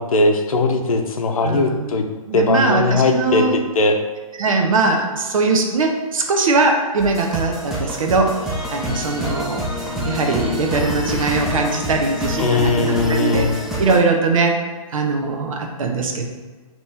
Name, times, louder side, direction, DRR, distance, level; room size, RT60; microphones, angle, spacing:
voice 1, 0.0-2.0 2.3-4.0 12.4-13.5, left 2 dB, 75° left, 5 dB, 0.7 m, -19 dB
voice 2, 1.4-1.9 2.2-3.5 4.4-9.7 10.0-13.5 13.8-14.6 14.9-16.3, right 3 dB, 65° right, 3 dB, 0.8 m, -20 dB
sound 1, 7.0-14.0, left 1 dB, ahead, 0.6 m, -26 dB
5.3 x 3.1 x 2.7 m, 1.3 s
hypercardioid pair, 140°, 18 cm